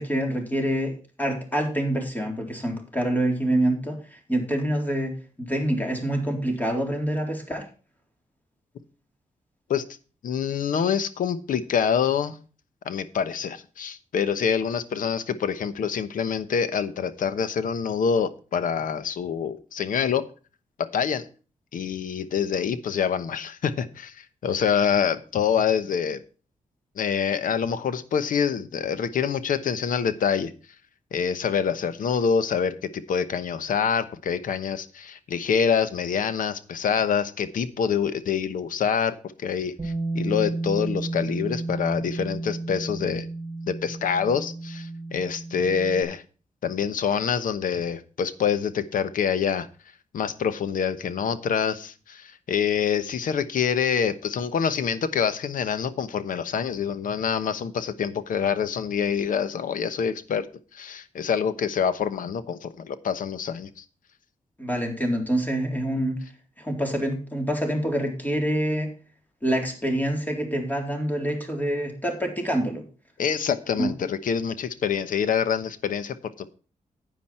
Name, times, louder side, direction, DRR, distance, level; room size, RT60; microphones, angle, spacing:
voice 1, 0.0-5.1 5.4-7.7 64.6-66.2 66.6-68.9 69.4-72.8 73.8-73.9, right 1 dB, 10° left, 2 dB, 3.7 m, -26 dB
voice 2, 10.2-12.4 12.8-20.2 20.8-21.3 21.7-26.2 27.0-30.5 31.1-39.1 39.4-43.3 43.7-46.2 46.6-49.7 50.1-60.5 60.7-63.8 73.2-76.5, left 7 dB, 85° left, 13 dB, 1.1 m, -26 dB
Bass guitar, 39.8-46.0, right 2 dB, 15° right, 4.6 m, -32 dB
10.0 x 9.3 x 4.4 m, 0.36 s
wide cardioid pair, 105°, 14 cm